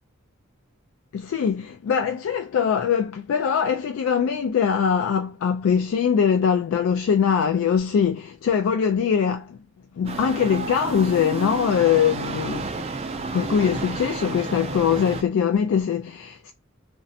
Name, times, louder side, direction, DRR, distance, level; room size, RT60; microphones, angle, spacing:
voice 1, 1.1-9.6 10.0-12.9 13.2-16.5, left 7 dB, 85° left, 0.3 m, -22 dB
sound 1, 10.0-15.2, right 3 dB, 30° right, 0.3 m, -31 dB
2.5 x 2.0 x 2.6 m
head